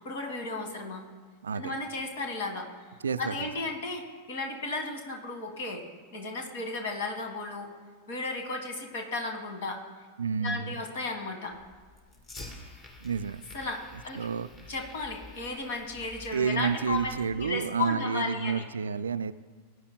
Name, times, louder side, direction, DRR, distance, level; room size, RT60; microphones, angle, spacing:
voice 1, 0.1-1.0 1.5-2.7 3.2-5.8 6.1-7.7 8.1-9.8 10.4-11.6 13.5-14.3 14.7-18.6, left 3 dB, 55° left, 4 dB, 1.6 m, -34 dB
voice 2, 1.4-1.7 3.0-3.5 10.2-10.8 13.0-13.4 14.2-14.5 16.3-19.3, right 6 dB, 70° right, 14 dB, 0.3 m, -30 dB
Fire, 11.5-17.5, left 2 dB, 30° left, 2.6 m, -49 dB
20.0 x 9.5 x 2.2 m, 1.5 s
figure-of-eight pair, 90°, 0 cm